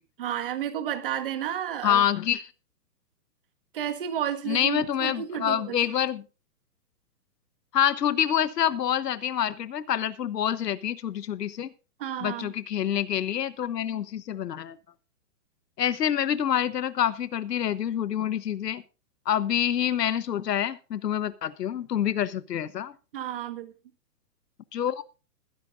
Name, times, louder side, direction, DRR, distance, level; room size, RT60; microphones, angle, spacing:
voice 1, 0.2-2.0 3.7-5.8 12.0-12.5 23.1-23.7, right 10 dB, 35° right, 8 dB, 1.6 m, -31 dB
voice 2, 1.8-2.5 4.5-6.2 7.7-11.7 12.2-14.8 15.8-18.8 19.3-22.9 24.7-25.0, left 10 dB, 85° left, 16 dB, 1.1 m, -27 dB
21.0 x 10.5 x 2.5 m, 0.33 s
hypercardioid pair, 175°, 47 cm